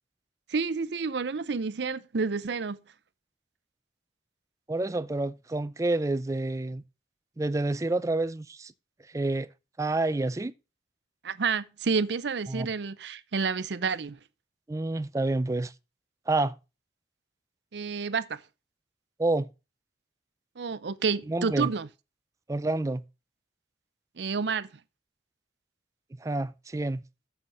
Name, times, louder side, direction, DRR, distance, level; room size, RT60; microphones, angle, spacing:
voice 1, 0.5-2.8 11.2-14.2 17.7-18.4 20.6-21.9 24.2-24.7, right 5 dB, 70° right, 0.6 m, -29 dB
voice 2, 4.7-6.8 7.4-8.7 9.1-9.5 9.8-10.5 12.5-12.7 14.7-15.7 16.3-16.6 19.2-19.5 21.3-21.7 22.5-23.0 26.2-27.0, right 2 dB, 15° right, 0.4 m, -28 dB
7.8 x 5.6 x 5.8 m
head